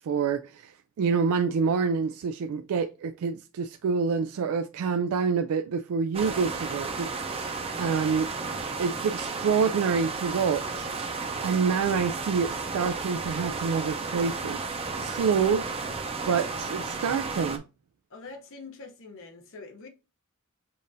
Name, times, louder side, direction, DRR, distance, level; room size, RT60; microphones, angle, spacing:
voice 1, 0.0-8.3 8.8-10.9 11.4-14.6 14.9-15.6 16.3-17.6, right 5 dB, 75° right, 0.3 m, -27 dB
sound 1, 6.1-17.6, right 4 dB, 25° right, 0.6 m, -33 dB
voice 2, 18.1-19.9, left 3 dB, 65° left, 0.9 m, -44 dB
7.0 x 2.5 x 2.6 m
head